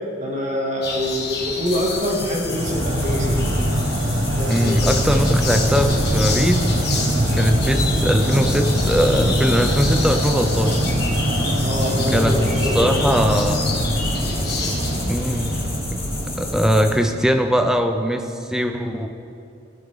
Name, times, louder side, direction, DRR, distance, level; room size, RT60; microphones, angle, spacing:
voice 1, 0.2-3.3 4.3-4.9 11.6-12.9, equal, 40° right, -2 dB, 2.0 m, -25 dB
sound 1, 0.8-15.7, left 4 dB, 55° left, 1.7 m, -30 dB
sound 2, 1.7-16.9, left 3 dB, 10° left, 1.2 m, -35 dB
sound 3, 2.5-17.5, equal, 80° right, 1.8 m, -22 dB
voice 2, 4.5-6.6 7.3-10.8 12.1-12.4 12.7-13.7 15.1-15.5 15.9-19.1, equal, 5° right, 6 dB, 0.6 m, -21 dB
17.0 x 9.2 x 3.7 m, 2.6 s
head